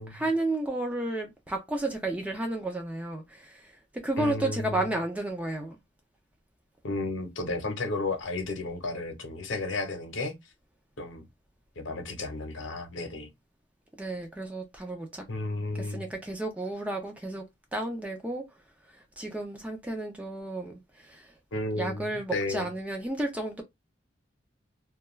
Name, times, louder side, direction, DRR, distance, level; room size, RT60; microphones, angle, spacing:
voice 1, 0.0-3.7 4.0-5.8 14.0-15.2 15.7-17.4 17.7-18.4 18.9-21.3 21.8-23.6, right 2 dB, 5° right, 0.4 m, -32 dB
voice 2, 4.2-4.9 6.8-10.3 11.0-11.2 11.8-13.3 15.3-16.0 21.5-22.7, left 2 dB, 70° left, 0.8 m, -33 dB
2.3 x 2.2 x 2.9 m
head